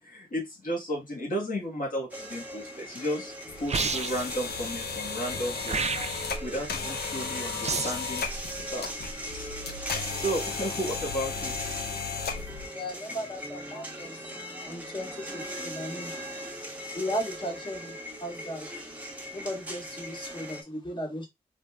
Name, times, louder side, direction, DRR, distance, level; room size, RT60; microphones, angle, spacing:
voice 1, 0.0-3.3 3.6-5.8 6.4-8.3 8.7-8.9 9.3-9.5 9.9-11.5, equal, 60° left, 1.5 m, -33 dB
sound 1, 2.1-20.6, equal, 10° right, 1.1 m, -40 dB
sound 2, 3.5-12.7, left 5 dB, 80° left, 0.6 m, -35 dB
sound 3, 3.7-4.4 5.7-6.4 7.6-8.1, right 5 dB, 40° right, 0.4 m, -30 dB
voice 2, 12.7-14.4 14.6-16.5 16.9-18.7 19.3-21.3, equal, 30° left, 1.6 m, -36 dB
4.9 x 2.1 x 2.3 m
cardioid pair, 50°, 17 cm